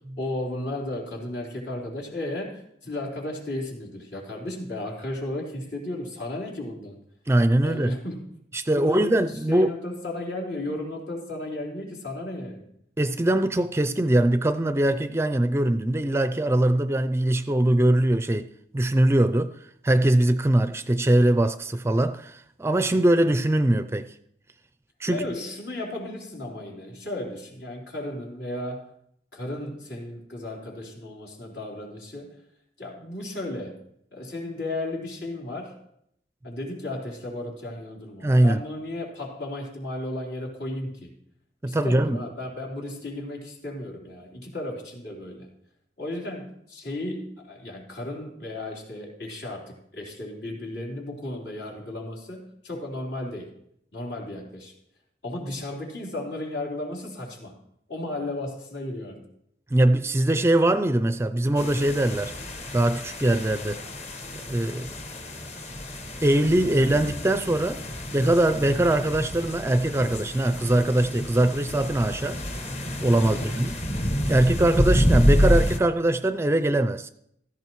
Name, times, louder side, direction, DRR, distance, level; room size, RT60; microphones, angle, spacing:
voice 1, 0.0-7.0 7.6-8.2 8.7-12.7 25.1-28.9 29.3-32.4 32.8-33.8 34.1-35.8 36.4-41.1 41.6-45.5 46.0-53.5 53.9-54.7 55.2-57.6 57.9-59.2 73.2-73.8 74.3-74.4, left 1 dB, 75° left, 3.8 m, -34 dB
voice 2, 7.3-7.9 8.5-9.7 13.0-19.5 19.8-24.1 25.0-25.3 38.2-38.6 41.6-42.2 59.7-62.3 62.7-63.8 64.5-64.9 66.2-67.8 68.1-72.4 73.0-73.7 74.3-77.1, right 1 dB, 15° right, 0.4 m, -22 dB
sound 1, 61.6-75.8, equal, 35° left, 1.1 m, -28 dB
16.5 x 14.0 x 3.1 m
head